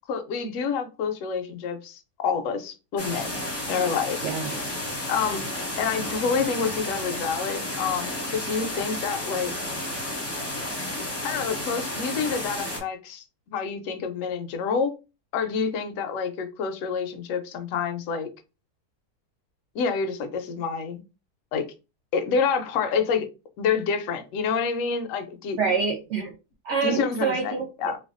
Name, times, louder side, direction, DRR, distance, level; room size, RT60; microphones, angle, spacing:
voice 1, 0.1-3.4 3.7-4.3 5.1-5.4 5.8-9.5 11.2-14.9 15.3-18.3 19.7-21.0 21.5-21.7 22.1-23.3 23.6-25.6 26.8-28.0, left 5 dB, 70° left, 0.8 m, -28 dB
sound 1, 3.0-12.8, left 1 dB, 25° left, 0.3 m, -32 dB
voice 2, 4.2-4.6 25.6-26.3 26.6-27.6, right 5 dB, 70° right, 0.7 m, -26 dB
3.3 x 2.2 x 2.4 m
omnidirectional pair, 1.7 m